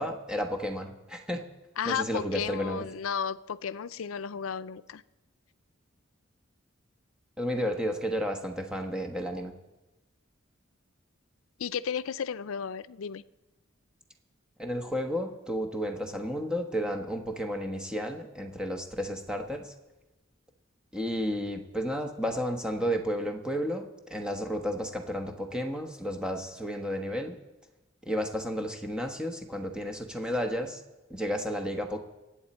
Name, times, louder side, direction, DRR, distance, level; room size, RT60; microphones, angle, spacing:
voice 1, 0.0-1.4 1.8-2.9 7.4-9.5 14.6-19.7 20.9-27.4 28.0-30.8 31.1-32.0, equal, 5° right, 4 dB, 1.1 m, -32 dB
voice 2, 1.8-5.0 11.6-13.2, left 7 dB, 90° left, 16 dB, 0.5 m, -33 dB
24.5 x 8.8 x 4.3 m, 1.1 s
head